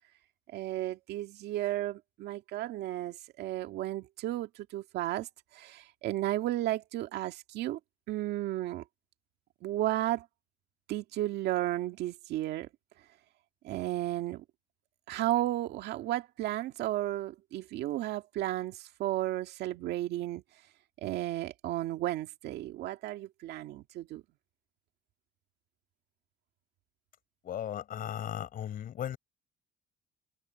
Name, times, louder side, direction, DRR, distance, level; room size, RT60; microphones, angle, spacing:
voice 1, 0.5-5.3 5.5-7.8 8.1-8.8 9.6-10.3 10.9-12.7 13.6-14.4 15.1-20.4 21.0-24.2, right 15 dB, 80° right, 2.0 m, -33 dB
voice 2, 27.4-29.2, left 10 dB, 55° left, 5.4 m, -36 dB
cardioid pair, 110°, 17 cm